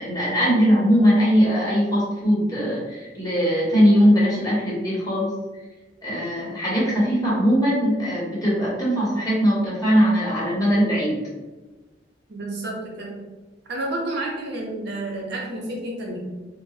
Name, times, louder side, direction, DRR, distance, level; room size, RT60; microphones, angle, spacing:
voice 1, 0.0-5.3 6.0-11.2, equal, 20° left, -7 dB, 1.0 m, -20 dB
voice 2, 12.3-13.2 13.7-16.3, right 1 dB, 60° right, -2 dB, 0.6 m, -30 dB
2.8 x 2.1 x 3.1 m, 1.2 s
head